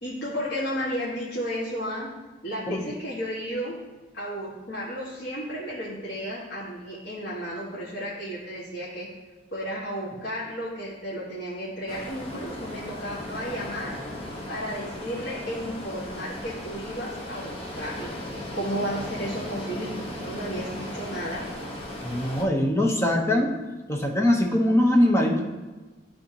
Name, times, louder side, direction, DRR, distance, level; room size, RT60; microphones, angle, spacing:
voice 1, 0.0-2.1 2.4-3.8 4.1-9.1 9.5-14.0 14.5-18.2 18.5-21.5, equal, 85° left, -8 dB, 1.9 m, -33 dB
sound 1, 11.9-22.4, left 1 dB, 30° left, 1.3 m, -37 dB
voice 2, 22.0-23.5 23.9-25.4, left 1 dB, 15° left, 0 dB, 1.0 m, -22 dB
12.5 x 4.3 x 3.0 m, 1.2 s
head